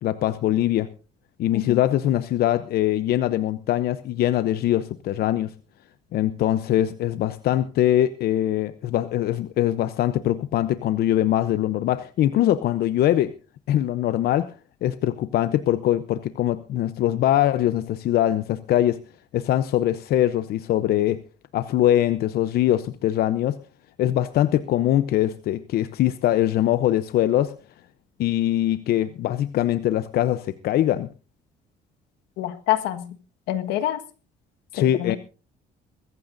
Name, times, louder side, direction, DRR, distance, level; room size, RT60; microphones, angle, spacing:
voice 1, 0.0-0.9 1.4-5.5 6.1-13.3 13.7-14.5 14.8-19.0 19.3-21.2 21.5-23.6 24.0-27.5 28.2-31.1 34.7-35.2, left 12 dB, 65° left, 0.7 m, -22 dB
voice 2, 32.4-33.2 33.5-34.0 34.8-35.2, left 13 dB, 85° left, 1.5 m, -26 dB
22.5 x 14.5 x 2.6 m
cardioid pair, 110°, 17 cm